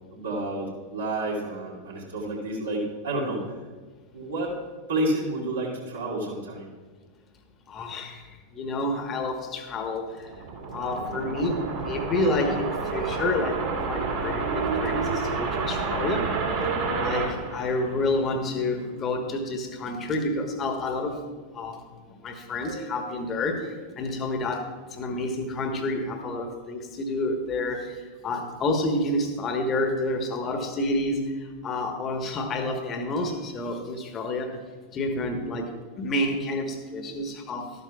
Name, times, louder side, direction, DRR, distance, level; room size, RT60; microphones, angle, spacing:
voice 1, 0.1-3.6 4.1-4.5 4.9-6.7 22.6-23.1, right 1 dB, 70° right, -4 dB, 2.9 m, -30 dB
voice 2, 7.7-8.3 8.5-10.3 10.7-16.3 17.0-21.2 21.5-21.8 22.1-34.6 34.9-37.7, left 2 dB, 30° left, 5 dB, 1.3 m, -29 dB
sound 1, 10.0-18.4, right 4 dB, 50° right, 2.3 m, -29 dB
13.0 x 12.5 x 2.4 m, 1.4 s
figure-of-eight pair, 90°, 0 cm